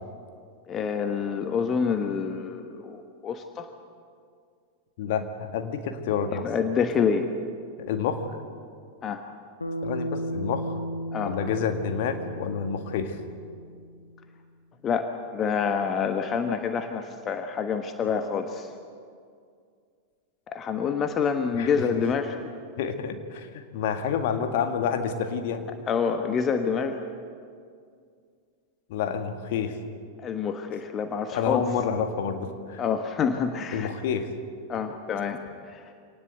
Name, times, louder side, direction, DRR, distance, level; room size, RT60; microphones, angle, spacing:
voice 1, 0.7-3.7 6.4-7.3 9.0-9.2 11.1-11.4 14.8-18.7 20.5-22.3 25.9-27.0 30.2-31.6 32.8-33.9 34.7-35.8, left 6 dB, 25° left, 7 dB, 1.3 m, -27 dB
voice 2, 5.0-6.5 7.8-8.3 9.8-10.7 11.2-13.2 21.5-21.7 22.8-25.7 28.9-29.8 31.3-32.8 33.7-34.3, left 7 dB, 50° left, 7 dB, 1.9 m, -29 dB
Bass guitar, 9.6-14.0, equal, 80° left, 1.2 m, -34 dB
25.5 x 18.5 x 8.2 m, 2.2 s
figure-of-eight pair, 90°, 0 cm